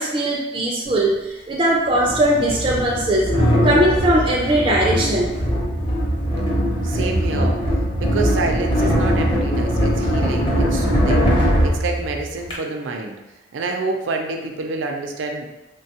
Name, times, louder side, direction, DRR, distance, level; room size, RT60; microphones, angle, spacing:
voice 1, 0.0-3.3 3.6-5.4, right 1 dB, 25° right, -3 dB, 0.3 m, -19 dB
sound 1, 0.9-1.0 1.9-12.5, equal, 25° left, 0.7 m, -20 dB
voice 2, 6.8-7.6 8.0-13.2 13.5-15.5, right 3 dB, 90° right, 3 dB, 0.4 m, -27 dB
3.1 x 2.2 x 2.7 m, 1.0 s
head